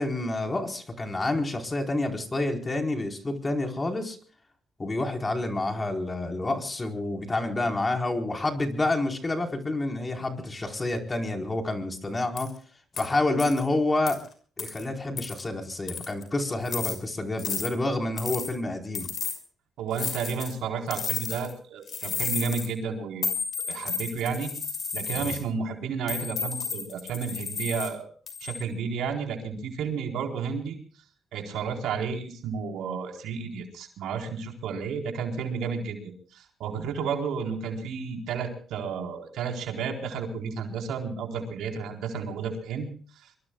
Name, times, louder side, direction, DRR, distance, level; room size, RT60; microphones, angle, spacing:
voice 1, 0.0-4.2 4.8-12.5 13.0-14.2 14.6-19.1 25.2-25.3, left 2 dB, 25° left, 3 dB, 4.4 m, -28 dB
sound 1, 12.4-12.5 13.0-13.1 13.4-13.6 14.1-14.2 14.6-14.8 15.2-15.4 15.9-16.2 16.6-17.0 17.4-17.7 18.2-18.5 18.9-19.4 19.9-20.5 20.9-21.5 21.9-22.7 23.2-25.4 26.1-27.9 28.3-28.6, left 6 dB, 50° left, 6.0 m, -32 dB
voice 2, 19.8-23.3 23.6-24.5 24.9-28.1 28.4-30.8 31.3-42.9 43.2-43.3, right 6 dB, 80° right, 3 dB, 4.2 m, -32 dB
24.0 x 23.5 x 2.4 m, 0.42 s
cardioid pair, 90°, 0 cm